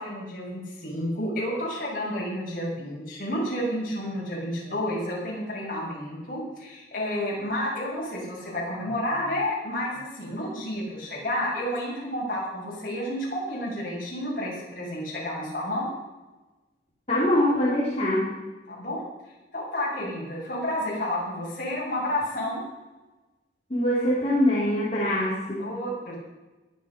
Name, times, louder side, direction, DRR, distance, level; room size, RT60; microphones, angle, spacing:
voice 1, 0.0-15.9 18.7-19.0 19.5-22.6 25.6-26.2, left 1 dB, 50° left, -4 dB, 6.5 m, -30 dB
voice 2, 17.1-18.3 23.7-25.7, left 1 dB, 35° left, -9 dB, 3.9 m, -23 dB
22.0 x 8.7 x 5.4 m, 1.1 s
head